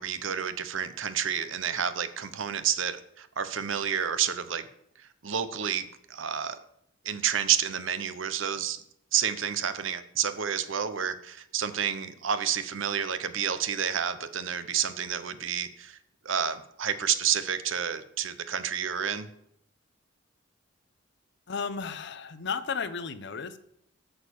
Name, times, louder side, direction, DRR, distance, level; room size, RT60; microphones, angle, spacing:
voice 1, 0.0-4.7 5.2-6.6 7.0-8.8 9.1-16.0 16.2-19.3, right 8 dB, 75° right, 12 dB, 0.8 m, -30 dB
voice 2, 21.5-23.6, left 5 dB, 60° left, 13 dB, 0.7 m, -34 dB
8.8 x 6.6 x 6.9 m, 0.73 s
head